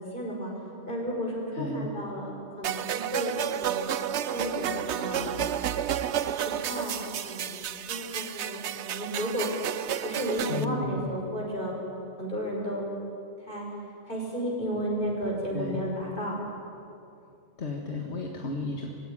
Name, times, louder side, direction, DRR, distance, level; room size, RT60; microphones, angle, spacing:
voice 1, 0.1-0.5 0.9-2.3 2.6-3.9 4.3-5.3 6.6-9.5 10.0-11.7 12.2-12.9 13.5-13.6 14.1-16.4, equal, 50° left, -2 dB, 5.8 m, -33 dB
voice 2, 1.5-1.9 10.5-11.0 15.5-15.8 17.6-19.0, left 2 dB, 70° left, 1 dB, 1.9 m, -33 dB
sound 1, 2.6-10.6, right 10 dB, 80° right, 1.0 m, -31 dB
21.5 x 16.5 x 9.9 m, 2.7 s
omnidirectional pair, 1.2 m